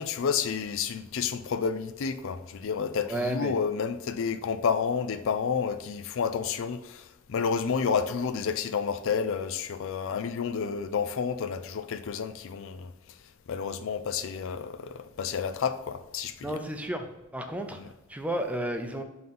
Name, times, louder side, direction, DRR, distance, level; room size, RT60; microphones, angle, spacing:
voice 1, 0.0-12.9 13.5-16.6 17.8-17.9, left 6 dB, 65° left, 0.4 m, -30 dB
voice 2, 3.1-3.5 16.4-17.1 17.3-19.0, right 1 dB, 5° right, 0.6 m, -32 dB
5.6 x 3.8 x 5.8 m
head